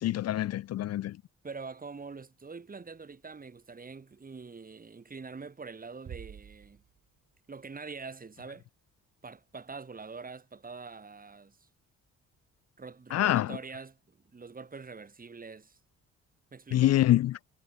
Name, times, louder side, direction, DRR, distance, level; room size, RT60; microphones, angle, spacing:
voice 1, 0.0-1.2 13.1-13.6 16.7-17.3, left 13 dB, 55° left, 0.5 m, -25 dB
voice 2, 1.4-6.8 7.5-8.6 9.2-11.7 12.8-15.8 16.5-17.0, right 4 dB, 30° right, 3.0 m, -44 dB
Bass drum, 6.1-7.5, right 8 dB, 50° right, 1.8 m, -48 dB
cardioid pair, 90°, 30 cm